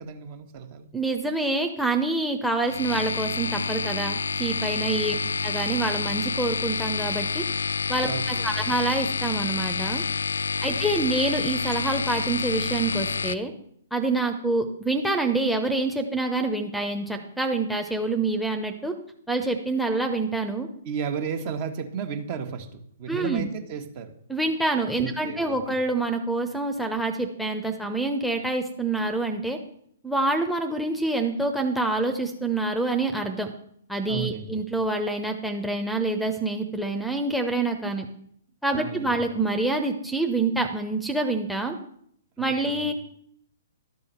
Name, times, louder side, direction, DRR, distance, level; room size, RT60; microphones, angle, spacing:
voice 1, 0.0-0.9 4.8-5.3 8.0-8.7 10.6-10.8 20.8-24.1 25.0-25.7 34.1-34.5 38.7-39.2 42.4-42.9, right 6 dB, 40° right, 7 dB, 1.5 m, -34 dB
voice 2, 0.9-5.1 5.4-7.4 7.9-10.0 10.6-13.5 13.9-18.9 19.3-20.7 23.1-23.5 24.3-29.6 30.0-33.5 33.9-38.1 38.6-41.8 42.4-42.9, right 2 dB, ahead, 8 dB, 0.9 m, -26 dB
sound 1, 2.6-13.3, left 4 dB, 75° left, 0.4 m, -28 dB
12.0 x 5.5 x 6.8 m, 0.69 s
figure-of-eight pair, 120°, 0 cm